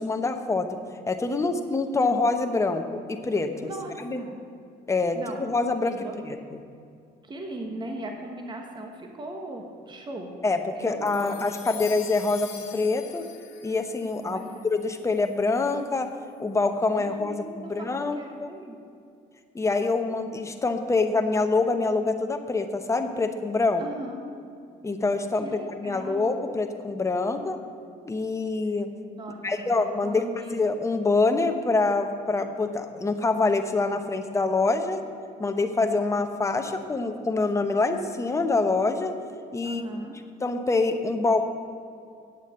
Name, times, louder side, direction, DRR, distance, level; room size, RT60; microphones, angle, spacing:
voice 1, 0.0-0.8 1.1-3.7 4.0-4.2 4.9-6.0 6.2-6.4 10.4-13.3 13.6-16.1 16.4-18.5 19.5-23.8 24.8-27.6 28.0-28.9 29.4-35.0 35.4-39.1 39.5-39.8 40.4-41.4, left 3 dB, 15° left, 6 dB, 0.9 m, -25 dB
voice 2, 3.6-4.4 5.1-5.4 5.8-6.3 7.2-10.4 10.7-11.9 14.2-14.7 17.0-17.9 18.1-18.8 23.8-24.2 25.4-26.3 29.2-29.7 30.0-30.6 39.6-40.2, right 1 dB, 25° right, 2 dB, 1.3 m, -38 dB
sound 1, 11.1-15.6, left 10 dB, 85° left, 1.2 m, -44 dB
8.5 x 8.2 x 8.0 m, 2.4 s
cardioid pair, 110°, 17 cm